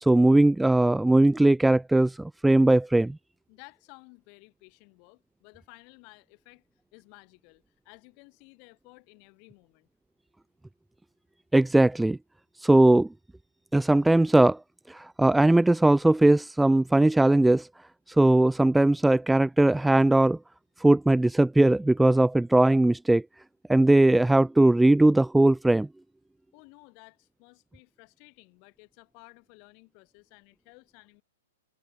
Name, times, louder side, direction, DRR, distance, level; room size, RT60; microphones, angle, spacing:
voice 1, 0.0-3.2 11.5-12.2 12.6-13.1 13.7-14.6 14.9-17.7 18.1-20.4 20.8-23.2 23.7-25.9, right 2 dB, 5° right, 0.3 m, -20 dB
voice 2, 3.5-6.6 6.9-9.9 26.5-31.2, left 38 dB, 40° left, 5.8 m, -54 dB
figure-of-eight pair, 110°, 0 cm